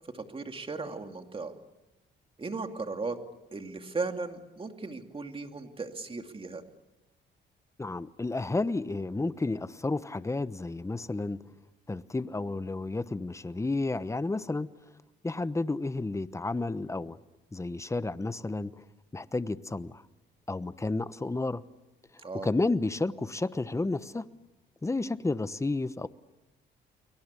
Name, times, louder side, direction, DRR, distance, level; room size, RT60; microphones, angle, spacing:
voice 1, 0.1-1.5 2.4-3.2 3.5-6.6 22.2-22.5, right 3 dB, 25° right, 6 dB, 2.6 m, -36 dB
voice 2, 7.8-11.4 11.9-14.7 15.2-17.2 17.5-18.8 19.1-20.0 20.5-21.6 22.4-24.3 24.8-26.1, left 2 dB, 15° left, 14 dB, 1.0 m, -31 dB
29.5 x 22.5 x 8.4 m, 0.99 s
cardioid pair, 90°, 20 cm